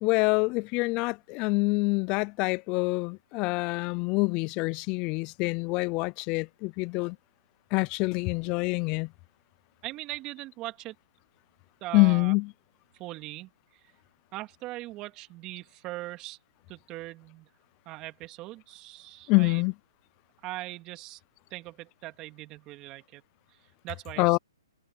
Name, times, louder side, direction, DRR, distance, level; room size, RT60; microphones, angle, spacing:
voice 1, 0.0-7.2 7.7-9.1 11.9-12.5 19.3-19.7 24.2-24.4, left 28 dB, 25° left, 0.5 m, -26 dB
voice 2, 9.8-10.9 11.8-12.3 12.9-13.5 14.3-16.4 16.7-17.5 17.8-19.6 20.4-21.2 21.5-23.2 23.8-24.4, right 18 dB, 25° right, 2.8 m, -40 dB
hypercardioid pair, 150°, 3 cm